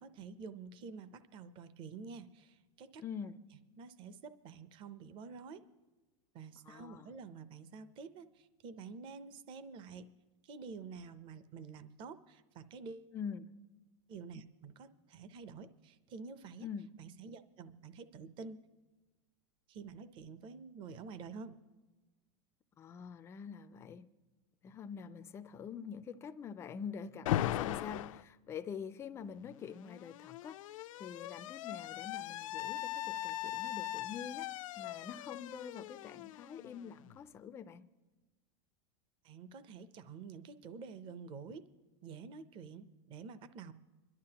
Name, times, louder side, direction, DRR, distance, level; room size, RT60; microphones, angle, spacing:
voice 1, 0.0-3.3 3.8-5.6 6.3-10.1 10.4-13.1 14.1-16.7 17.0-18.6 19.7-21.6 39.2-41.7 42.0-43.7, right 5 dB, 30° right, 0.6 m, -49 dB
voice 2, 3.0-3.4 6.7-7.1 13.1-13.5 16.6-16.9 22.8-24.0 24.6-30.6 31.0-34.5 34.8-37.9, left 7 dB, 15° left, 0.3 m, -45 dB
Alarm, 27.3-28.2 29.4-37.1, left 14 dB, 85° left, 0.4 m, -39 dB
24.0 x 11.5 x 2.9 m
supercardioid pair, 155°, 17 cm